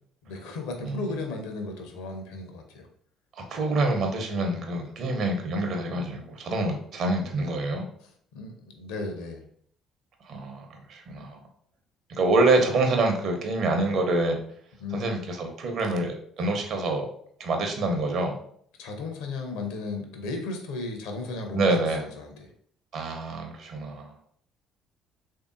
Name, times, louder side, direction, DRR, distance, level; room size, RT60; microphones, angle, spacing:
voice 1, 0.2-2.9 8.3-9.4 14.8-15.0 18.8-22.5, left 3 dB, 65° left, 4 dB, 0.6 m, -35 dB
voice 2, 0.8-1.2 3.4-7.8 10.2-11.4 12.1-14.4 14.9-17.1 17.4-18.4 21.5-22.1 22.9-24.1, right 2 dB, 50° right, 4 dB, 0.7 m, -26 dB
3.4 x 2.7 x 2.5 m, 0.63 s
figure-of-eight pair, 50°, 0 cm